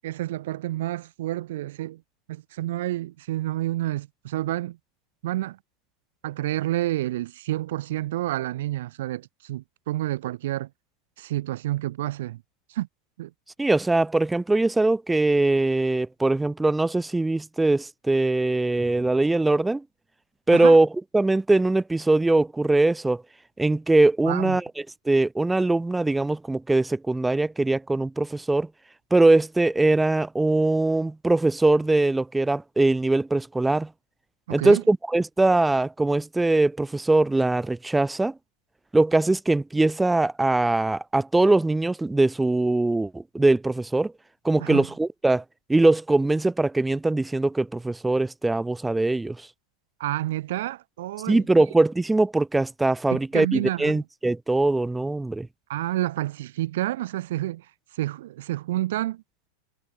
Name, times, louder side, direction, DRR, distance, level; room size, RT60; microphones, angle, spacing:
voice 1, 0.0-2.0 2.3-4.8 5.2-5.6 6.2-10.7 11.2-12.4 12.7-12.9 13.2-13.3 20.5-20.8 24.2-24.6 34.5-34.8 44.6-44.9 50.0-51.4 53.1-54.0 55.7-57.6 57.9-59.2, right 15 dB, 55° right, 1.6 m, -29 dB
voice 2, 13.6-19.8 20.5-20.9 21.1-23.2 23.6-24.6 25.1-28.7 29.1-33.9 34.5-38.3 38.9-44.1 44.4-45.4 45.7-49.4 51.3-55.5, right 2 dB, 5° right, 0.5 m, -21 dB
figure-of-eight pair, 90°, 0 cm